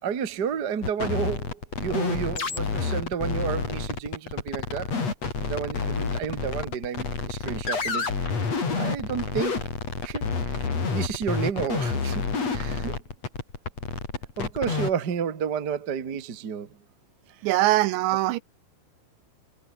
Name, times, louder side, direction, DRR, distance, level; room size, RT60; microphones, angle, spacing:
voice 1, 0.0-4.9 5.4-8.4 8.7-9.6 10.0-12.2 12.5-13.0 14.4-16.8, right 7 dB, 50° right, 1.2 m, -31 dB
sound 1, 0.8-14.9, left 4 dB, 35° left, 5.3 m, -29 dB
voice 2, 17.4-18.4, right 17 dB, 80° right, 2.9 m, -22 dB
omnidirectional pair, 5.4 m